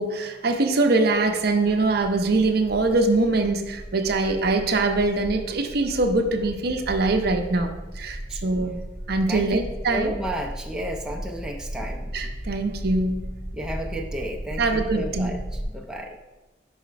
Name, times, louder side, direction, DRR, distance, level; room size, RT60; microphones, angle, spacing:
voice 1, 0.0-8.7 9.1-10.1 12.1-13.3 14.6-15.3, right 2 dB, 55° right, 5 dB, 0.6 m, -23 dB
sound 1, 1.5-15.6, equal, 15° left, 0.9 m, -36 dB
voice 2, 8.3-8.7 9.3-9.6 9.9-12.1 13.5-16.2, right 1 dB, 5° right, -1 dB, 0.5 m, -32 dB
5.6 x 4.2 x 5.1 m, 1.1 s
head